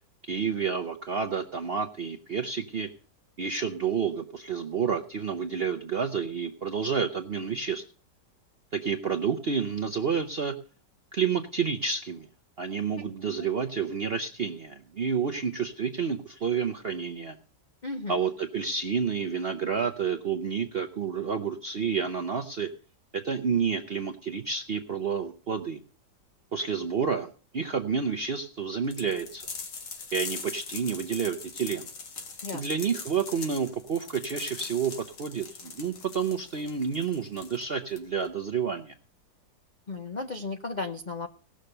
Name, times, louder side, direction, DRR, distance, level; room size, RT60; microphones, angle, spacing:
voice 1, 0.2-2.9 3.4-7.8 8.7-10.6 11.1-12.3 12.6-17.4 18.1-22.7 23.1-25.8 26.5-29.5 30.1-31.9 32.5-38.9, right 6 dB, 60° right, 5 dB, 0.6 m, -29 dB
voice 2, 17.8-18.1 32.4-32.6 39.9-41.3, left 3 dB, 55° left, 5 dB, 0.4 m, -34 dB
sound 1, 28.9-38.3, left 5 dB, 75° left, 2.2 m, -41 dB
17.5 x 6.5 x 6.6 m, 0.40 s
omnidirectional pair, 2.0 m